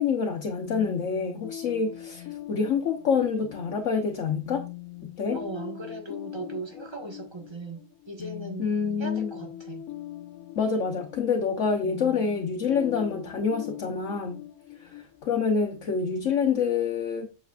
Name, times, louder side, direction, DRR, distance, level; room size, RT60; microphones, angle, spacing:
voice 1, 0.0-4.6 5.0-5.4 8.6-9.3 10.6-14.5 14.8-17.3, left 6 dB, 65° left, 1.2 m, -27 dB
sound 1, 0.7-16.2, left 13 dB, 85° left, 1.1 m, -42 dB
voice 2, 5.3-7.8 8.1-8.7 9.0-9.8, right 2 dB, 20° right, 1.3 m, -38 dB
7.9 x 7.0 x 2.4 m
omnidirectional pair, 1.5 m